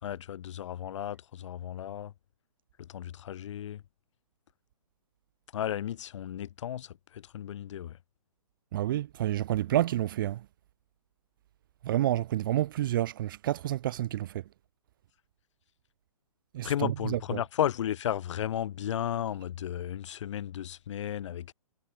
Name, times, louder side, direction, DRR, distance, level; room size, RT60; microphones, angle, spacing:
voice 1, 0.0-2.1 2.8-3.8 5.5-8.0 16.6-21.5, left 10 dB, 55° left, 3.6 m, -34 dB
voice 2, 8.7-10.4 11.8-14.4 16.5-17.4, right 13 dB, 35° right, 0.4 m, -29 dB
hypercardioid pair, 145°, 19 cm